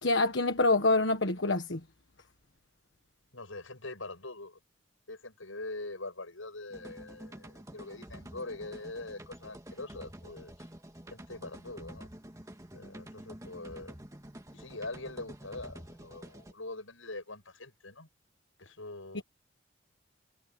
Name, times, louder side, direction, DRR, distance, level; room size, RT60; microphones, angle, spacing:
voice 1, 0.0-1.8 19.1-19.2, left 2 dB, 65° left, 1.4 m, -26 dB
voice 2, 3.3-4.6 5.1-10.5 11.1-12.1 12.7-13.9 14.5-18.1 18.6-19.2, left 2 dB, 80° left, 7.8 m, -43 dB
sound 1, 6.7-16.5, right 1 dB, 15° right, 2.0 m, -49 dB
head